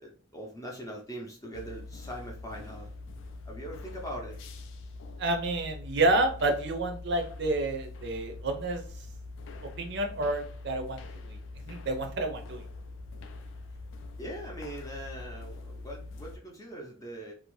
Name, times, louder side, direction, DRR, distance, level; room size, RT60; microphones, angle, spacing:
voice 1, 0.0-2.9 3.5-4.4 14.2-17.3, right 1 dB, 15° left, -1 dB, 0.5 m, -41 dB
sound 1, 1.5-16.4, left 2 dB, 65° left, 0.3 m, -43 dB
voice 2, 5.2-8.8 9.8-11.4 11.7-12.6, right 2 dB, 55° right, 5 dB, 0.5 m, -29 dB
2.6 x 2.0 x 3.0 m, 0.42 s
head